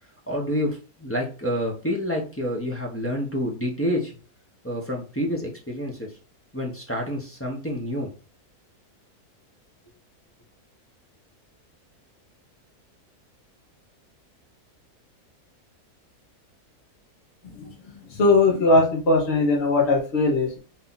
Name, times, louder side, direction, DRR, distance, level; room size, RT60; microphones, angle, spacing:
voice 1, 0.3-4.2 4.6-6.1 6.5-8.1, equal, 15° left, -3 dB, 0.6 m, -28 dB
voice 2, 18.1-20.6, left 2 dB, 45° left, -4 dB, 1.3 m, -19 dB
4.0 x 2.8 x 3.9 m, 0.36 s
omnidirectional pair, 1.6 m